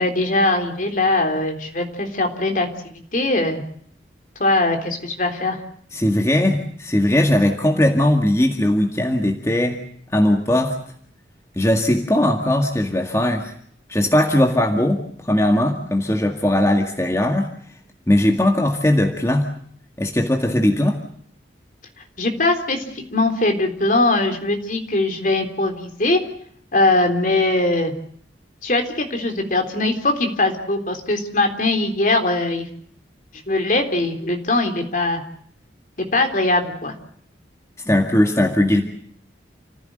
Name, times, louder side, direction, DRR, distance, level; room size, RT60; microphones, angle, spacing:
voice 1, 0.0-2.7 3.1-3.6 4.4-5.6 22.2-26.2 26.7-27.9 28.6-32.7 33.5-35.2 36.0-36.9, left 2 dB, 45° left, 5 dB, 3.7 m, -21 dB
voice 2, 5.9-9.8 10.1-10.8 11.6-13.5 13.9-17.5 18.1-19.5 20.0-21.0 37.9-38.8, left 1 dB, 15° left, 2 dB, 1.9 m, -19 dB
29.5 x 15.5 x 7.9 m, 0.64 s
head